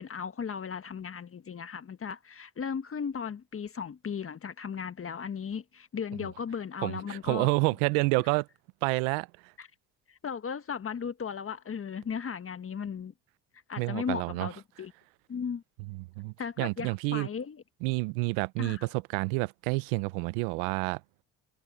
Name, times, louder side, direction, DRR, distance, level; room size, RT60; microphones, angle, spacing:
voice 1, 0.0-7.5 9.6-9.7 10.1-13.1 13.7-14.9 15.3-15.6 16.4-17.6 18.6-18.9, left 6 dB, 35° left, 1.5 m, -36 dB
voice 2, 6.8-8.4 8.8-9.3 13.8-14.5 15.9-17.3 17.8-21.0, right 25 dB, 85° right, 0.8 m, -29 dB
supercardioid pair, 70°, 37 cm